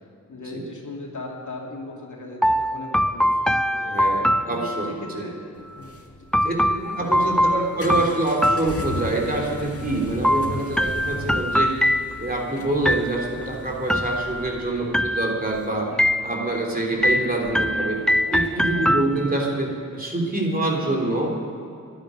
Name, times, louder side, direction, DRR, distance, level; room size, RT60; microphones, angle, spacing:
voice 1, 0.3-3.3 3.6-4.0 4.5-8.1 10.7-11.0 14.8-15.0 15.9-16.1 17.6-17.8 18.7-18.9, left 2 dB, 60° left, -1 dB, 2.7 m, -38 dB
sound 1, 2.4-5.2 6.3-9.3 10.2-12.4 12.9-13.5 13.9-14.6 14.9-15.6 16.0-16.6 17.0-19.5, equal, ahead, 0.4 m, -23 dB
voice 2, 3.8-5.3 6.4-6.5 7.0-11.7 12.2-15.9 16.2-18.0 18.3-21.4, right 2 dB, 25° right, -1 dB, 3.6 m, -26 dB
sound 2, 5.6-19.4, left 2 dB, 45° left, 1.9 m, -39 dB
12.0 x 11.0 x 9.5 m, 2.5 s
cardioid pair, 50°, 33 cm